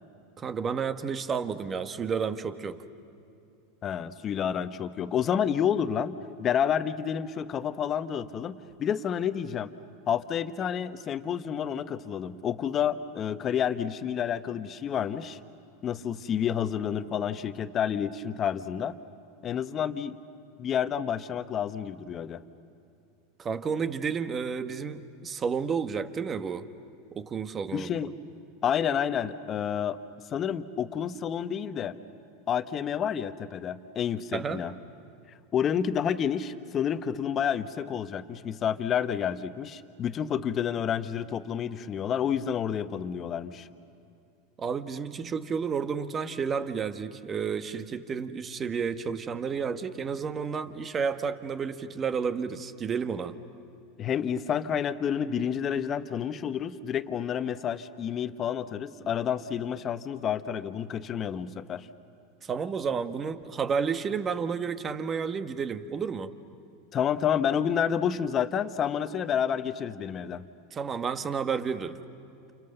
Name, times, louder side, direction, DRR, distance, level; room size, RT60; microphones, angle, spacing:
voice 1, 0.4-2.8 23.4-26.7 27.1-27.9 34.3-34.6 44.6-53.4 62.4-66.3 70.7-72.0, right 6 dB, 30° right, 10 dB, 1.4 m, -31 dB
voice 2, 3.8-9.7 10.1-15.4 15.8-18.9 19.4-20.2 20.6-22.4 27.7-28.1 28.6-30.0 30.3-32.0 32.5-34.7 35.5-43.7 54.0-61.9 66.9-70.4, left 8 dB, 35° left, 11 dB, 1.1 m, -29 dB
29.5 x 29.0 x 6.8 m, 2.6 s
hypercardioid pair, 100°, 0 cm